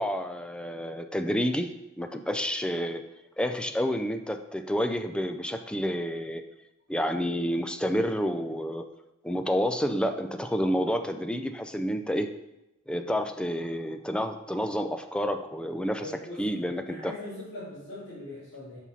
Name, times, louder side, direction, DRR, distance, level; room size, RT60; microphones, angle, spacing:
voice 1, 0.0-3.1 3.4-6.4 6.9-8.9 9.2-12.3 12.9-16.1 16.4-17.1, equal, 5° left, 7 dB, 0.4 m, -29 dB
voice 2, 16.0-18.8, left 1 dB, 80° left, -11 dB, 2.8 m, -41 dB
7.3 x 5.4 x 4.2 m, 0.91 s
head